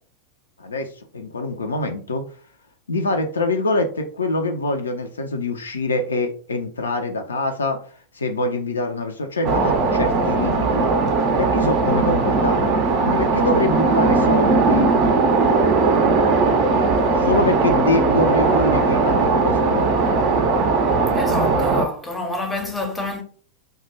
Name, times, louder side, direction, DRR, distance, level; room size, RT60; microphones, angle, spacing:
voice 1, 1.1-2.2 2.9-7.8 8.1-10.9 11.4-12.8 13.0-14.9 17.2-19.9, left 2 dB, 75° left, 0.3 m, -24 dB
sound 1, 9.4-21.9, right 3 dB, 40° right, 0.4 m, -18 dB
voice 2, 21.1-23.2, left 1 dB, 10° left, 0.6 m, -28 dB
2.1 x 2.0 x 3.0 m
figure-of-eight pair, 90°, 0 cm